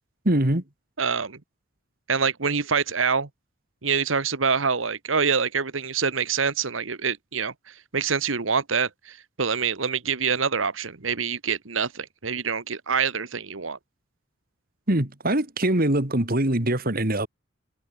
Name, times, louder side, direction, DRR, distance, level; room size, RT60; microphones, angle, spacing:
voice 1, 0.2-0.6 14.9-17.3, right 1 dB, 50° right, 2.9 m, -23 dB
voice 2, 1.0-1.4 2.1-3.3 3.8-13.8, right 6 dB, 85° right, 1.5 m, -26 dB
head